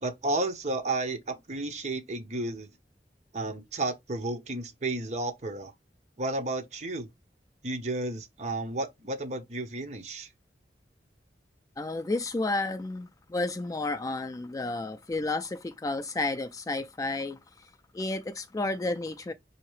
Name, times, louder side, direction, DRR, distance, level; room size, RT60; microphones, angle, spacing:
voice 1, 0.0-2.7 3.3-5.7 6.2-7.1 7.6-10.3, right 2 dB, 40° right, 0.8 m, -32 dB
voice 2, 11.8-17.4 17.9-19.3, left 2 dB, 20° left, 0.3 m, -31 dB
5.5 x 2.8 x 3.0 m
head